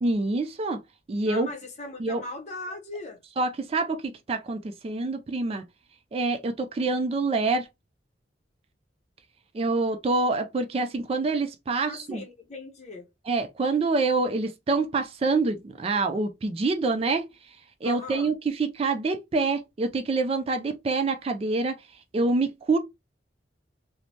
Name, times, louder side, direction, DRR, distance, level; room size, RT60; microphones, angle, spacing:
voice 1, 0.0-0.8 1.1-1.5 2.0-2.2 3.4-5.6 6.1-7.7 9.5-12.2 13.3-17.3 17.8-21.8 22.1-22.8, right 3 dB, 30° right, 0.3 m, -26 dB
voice 2, 1.3-3.2 11.7-13.1 17.8-18.3, left 2 dB, 40° left, 0.7 m, -39 dB
3.2 x 2.0 x 2.7 m
head